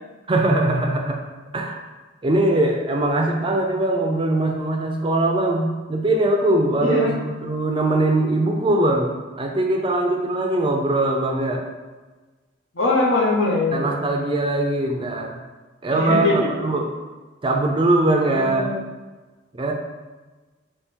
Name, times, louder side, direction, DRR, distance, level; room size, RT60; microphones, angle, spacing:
voice 1, 0.3-1.2 1.5-1.8 2.2-11.6 13.7-15.4 15.8-17.0 17.4-18.7 19.5-19.7, right 2 dB, 25° right, 2 dB, 0.4 m, -21 dB
voice 2, 6.8-7.2 12.7-13.8 15.9-16.5 18.2-18.8, left 3 dB, 70° left, -2 dB, 1.0 m, -22 dB
3.4 x 3.1 x 4.4 m, 1.2 s
head